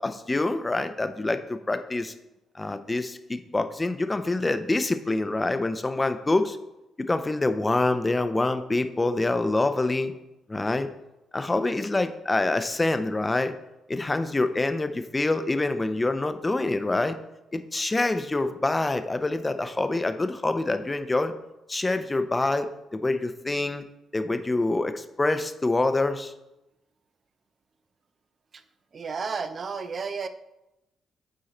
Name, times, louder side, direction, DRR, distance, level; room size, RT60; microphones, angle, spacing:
voice 1, 0.0-2.1 2.5-6.6 7.0-10.1 10.5-10.9 11.3-13.5 13.9-17.2 17.5-21.3 21.7-23.8 24.1-26.3, left 2 dB, 25° left, 9 dB, 0.7 m, -26 dB
voice 2, 28.9-30.3, right 5 dB, 45° right, 11 dB, 0.6 m, -32 dB
8.9 x 3.8 x 4.3 m, 0.94 s
hypercardioid pair, 45°, 0 cm